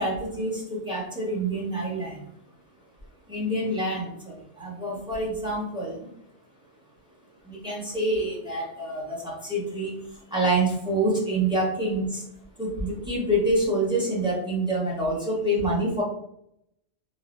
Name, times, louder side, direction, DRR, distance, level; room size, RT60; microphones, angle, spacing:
voice 1, 0.0-2.2 3.3-6.1 7.4-9.9 10.3-12.2 12.6-16.0, right 1 dB, 5° right, -6 dB, 0.8 m, -27 dB
3.3 x 2.2 x 2.5 m, 0.74 s
omnidirectional pair, 1.3 m